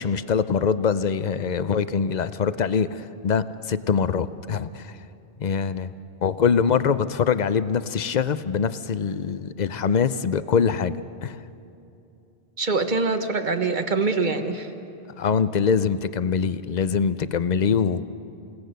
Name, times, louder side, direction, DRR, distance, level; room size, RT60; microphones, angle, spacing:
voice 1, 0.0-5.0 5.4-5.9 6.2-11.4 15.2-18.0, left 6 dB, 50° left, 14 dB, 0.7 m, -23 dB
voice 2, 12.6-14.7, right 3 dB, 50° right, 7 dB, 1.4 m, -24 dB
29.0 x 17.5 x 6.7 m, 2.7 s
omnidirectional pair, 1.1 m